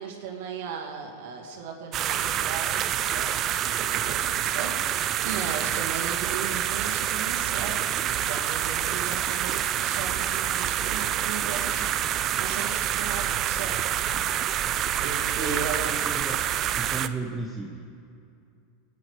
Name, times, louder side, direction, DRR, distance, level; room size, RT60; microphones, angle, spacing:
voice 1, 0.0-15.9, right 6 dB, 70° right, 0 dB, 2.3 m, -37 dB
sound 1, 1.9-17.1, right 10 dB, 30° right, 0.4 m, -27 dB
voice 2, 14.7-16.5 16.8-17.8, right 3 dB, 5° right, 0 dB, 0.8 m, -35 dB
22.0 x 9.5 x 4.9 m, 2.5 s
supercardioid pair, 160°, 0 cm